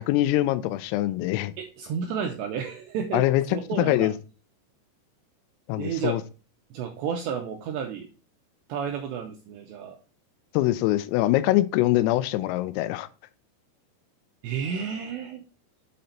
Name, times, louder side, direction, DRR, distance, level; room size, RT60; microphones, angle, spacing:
voice 1, 0.0-1.5 3.1-3.4 3.8-4.1 5.7-6.2 10.5-13.1, left 15 dB, 85° left, 14 dB, 3.3 m, -23 dB
voice 2, 1.6-3.2 3.5-4.1 5.8-6.2 6.7-8.1 8.7-10.0 14.4-15.4, right 7 dB, 85° right, 4 dB, 2.5 m, -31 dB
7.8 x 4.3 x 5.2 m, 0.35 s
omnidirectional pair, 5.9 m